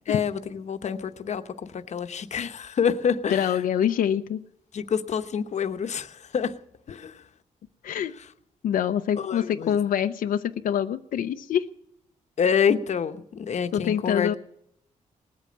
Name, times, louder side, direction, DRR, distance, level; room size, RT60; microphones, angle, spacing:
voice 1, 0.1-3.6 4.7-6.6 6.9-7.2 9.2-9.8 12.4-14.4, left 7 dB, 55° left, 9 dB, 0.9 m, -27 dB
voice 2, 3.3-4.4 7.8-8.1 8.6-11.7 13.7-14.3, left 9 dB, 90° left, 7 dB, 0.6 m, -25 dB
19.5 x 8.5 x 8.7 m, 0.73 s
cardioid pair, 120°, 14 cm